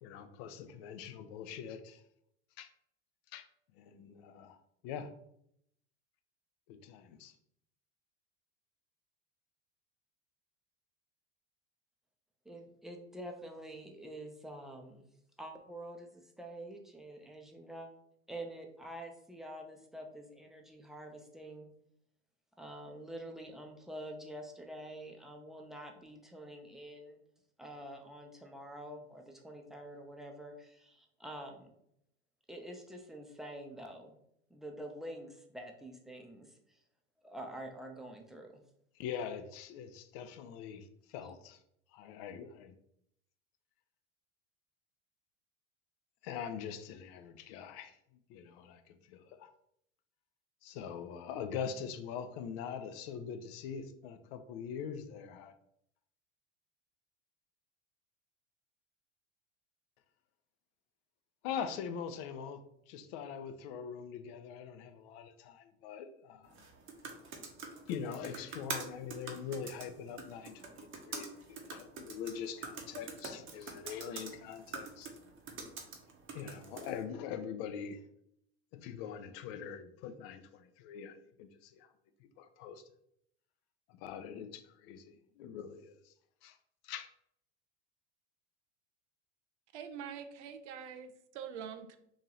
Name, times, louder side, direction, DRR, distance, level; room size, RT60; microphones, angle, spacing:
voice 1, 0.0-2.0 2.6-2.7 3.3-3.5 3.7-4.6 4.8-5.1 6.7-7.3 38.9-41.6 41.9-42.7 46.2-48.0 48.3-49.5 50.6-55.5 61.4-66.6 67.9-75.1 76.3-78.0 78.7-81.9 82.2-82.8 83.9-86.1 86.4-86.6 86.8-87.1, left 7 dB, 60° left, 9 dB, 0.5 m, -43 dB
voice 2, 12.5-15.0 15.4-17.9 18.3-21.7 22.6-27.2 27.6-31.7 32.5-34.1 34.5-36.8 37.2-38.6, right 1 dB, ahead, 2 dB, 0.6 m, -47 dB
sound 1, 66.5-77.0, right 4 dB, 35° right, 0.8 m, -46 dB
voice 3, 89.7-92.0, right 7 dB, 80° right, 9 dB, 0.6 m, -45 dB
3.0 x 2.7 x 3.8 m, 0.74 s
hypercardioid pair, 90°, 34 cm